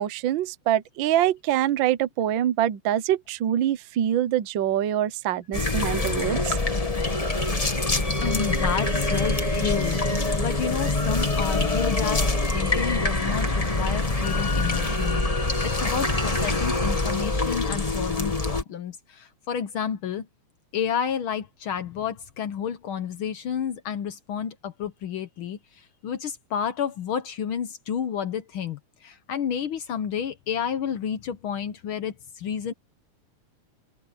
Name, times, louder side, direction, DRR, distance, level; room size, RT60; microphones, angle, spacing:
voice 1, 0.0-6.6, right 11 dB, 70° right, 1.1 m, -25 dB
sound 1, 5.5-18.6, left 2 dB, 20° left, 1.0 m, -25 dB
voice 2, 8.2-10.0 10.3-12.2 12.5-15.3 15.6-20.3 20.7-25.6 26.0-32.7, left 8 dB, 70° left, 1.3 m, -30 dB
omnidirectional pair, 3.4 m